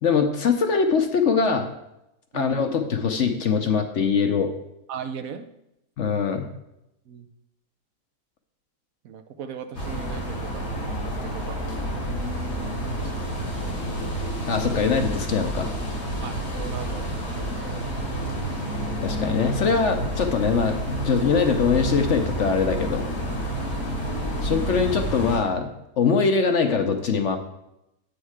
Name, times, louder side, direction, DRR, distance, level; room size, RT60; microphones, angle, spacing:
voice 1, 0.0-1.7 2.3-4.5 6.0-6.5 14.5-15.7 19.0-23.1 24.4-27.4, left 5 dB, 55° left, 6 dB, 1.0 m, -22 dB
voice 2, 2.3-2.6 4.9-5.5 7.1-7.3 9.0-12.2 12.8-13.3 16.2-17.9 23.6-23.8, right 7 dB, 70° right, 9 dB, 1.0 m, -39 dB
sound 1, 9.7-25.4, right 1 dB, 85° left, 2.9 m, -29 dB
8.4 x 6.5 x 4.8 m, 0.86 s
omnidirectional pair, 1.7 m